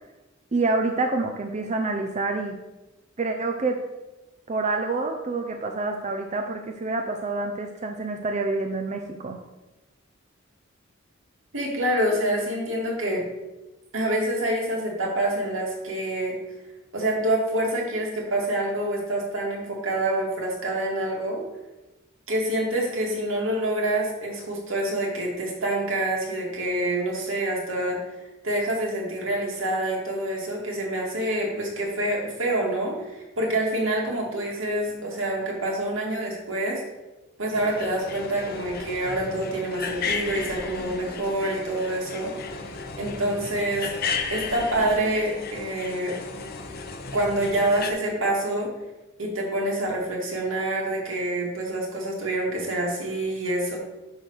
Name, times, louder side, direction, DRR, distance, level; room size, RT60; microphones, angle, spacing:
voice 1, 0.5-2.6 3.2-3.8 4.5-9.4, right 3 dB, 35° right, 4 dB, 0.6 m, -27 dB
voice 2, 11.5-13.2 13.9-16.3 16.9-21.4 22.3-28.0 28.4-36.8 37.4-42.3 43.0-43.9 44.3-46.2 47.1-48.7 49.2-53.8, right 1 dB, 80° right, -2 dB, 2.2 m, -26 dB
sound 1, 37.5-47.9, left 4 dB, 50° left, 0.7 m, -34 dB
10.0 x 3.4 x 6.3 m, 1.1 s
head